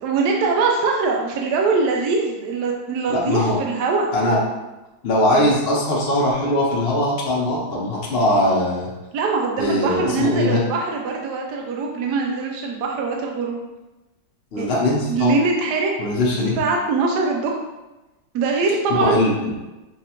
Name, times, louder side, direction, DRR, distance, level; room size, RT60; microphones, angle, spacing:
voice 1, 0.0-4.1 9.1-13.6 14.6-14.7 15.1-15.9 16.6-17.6 18.3-19.3, right 4 dB, 75° right, 0 dB, 1.0 m, -22 dB
voice 2, 3.1-3.6 4.1-4.4 5.0-8.9 9.6-10.6 14.5-15.3 16.0-16.6 19.0-19.5, left 1 dB, 50° left, -5 dB, 0.7 m, -20 dB
5.8 x 2.3 x 2.9 m, 1.1 s
omnidirectional pair, 2.1 m